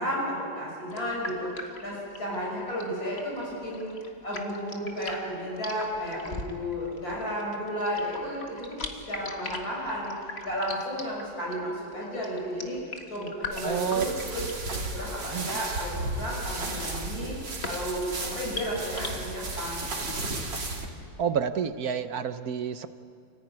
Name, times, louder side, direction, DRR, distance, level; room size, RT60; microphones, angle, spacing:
voice 1, 0.0-8.8 9.1-10.1 10.4-20.5, equal, 55° left, -4 dB, 6.9 m, -33 dB
sound 1, 0.9-19.1, left 3 dB, 35° left, 1.9 m, -41 dB
sound 2, 13.5-20.9, right 2 dB, 80° right, 3.3 m, -34 dB
voice 2, 13.6-14.0 15.3-15.5 21.2-22.9, right 8 dB, 60° right, 10 dB, 1.3 m, -29 dB
29.5 x 15.0 x 9.7 m, 2.3 s
omnidirectional pair, 1.9 m